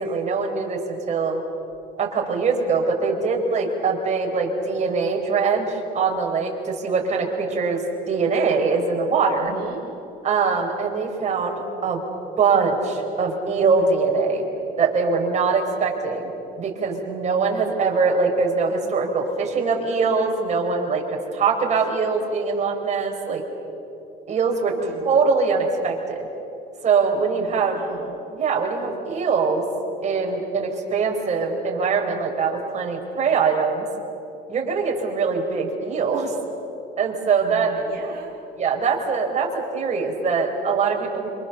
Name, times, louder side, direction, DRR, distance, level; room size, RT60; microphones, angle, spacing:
voice 1, 0.0-1.4 2.0-9.5 10.2-12.0 12.4-14.4 14.8-16.3 16.6-23.4 24.3-24.7 25.0-26.3 26.8-27.8 28.3-29.7 30.0-33.9 34.5-36.3 37.0-37.7 38.5-41.3, right 5 dB, 45° right, 1 dB, 4.5 m, -22 dB
voice 2, 9.3-9.8 24.7-25.1 27.2-28.1 37.4-38.3, right 7 dB, 65° right, -3 dB, 2.9 m, -38 dB
27.0 x 24.5 x 7.0 m, 3.0 s
cardioid pair, 110°, 17 cm